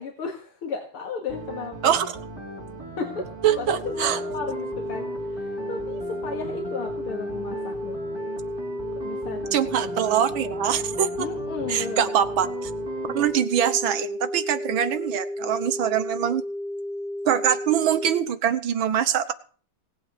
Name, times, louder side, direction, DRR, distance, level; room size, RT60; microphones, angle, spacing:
voice 1, 0.0-2.0 3.0-3.3 3.6-8.0 9.0-9.6 11.2-12.0, left 5 dB, 80° left, 2 dB, 2.7 m, -34 dB
sound 1, 1.3-13.3, right 2 dB, 10° right, 3.5 m, -38 dB
voice 2, 3.4-4.2 9.5-11.3 11.7-12.7 13.1-16.4 17.3-19.3, right 9 dB, 70° right, 11 dB, 1.7 m, -23 dB
sound 2, 3.8-18.2, left 1 dB, 55° left, 2.0 m, -33 dB
18.5 x 8.5 x 6.7 m, 0.43 s
omnidirectional pair, 2.4 m